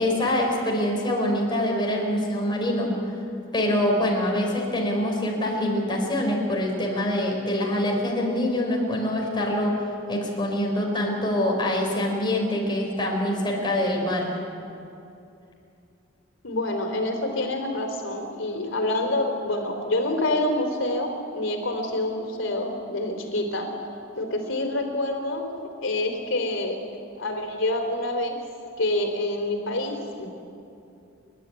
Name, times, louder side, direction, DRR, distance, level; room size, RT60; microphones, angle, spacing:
voice 1, 0.0-2.9 3.5-9.8 10.1-14.4, left 1 dB, 25° left, -1 dB, 4.9 m, -25 dB
voice 2, 16.4-23.7 24.2-25.4 25.8-26.8 27.2-28.4 28.8-30.3, left 1 dB, 70° left, 3 dB, 3.8 m, -27 dB
29.0 x 12.0 x 9.7 m, 2.7 s
head